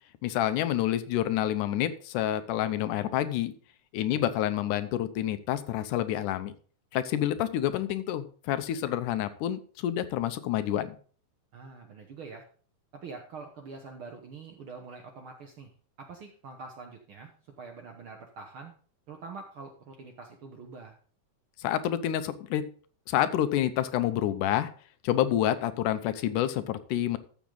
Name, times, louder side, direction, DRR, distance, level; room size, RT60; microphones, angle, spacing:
voice 1, 0.2-3.5 3.9-6.5 6.9-11.0 21.6-22.6 23.1-24.7 25.0-27.2, left 12 dB, 80° left, 12 dB, 2.2 m, -28 dB
voice 2, 11.5-12.4 13.0-15.7 16.0-18.7 19.1-20.9, right 4 dB, 60° right, 3 dB, 1.4 m, -45 dB
13.5 x 7.2 x 3.8 m, 0.43 s
omnidirectional pair, 3.6 m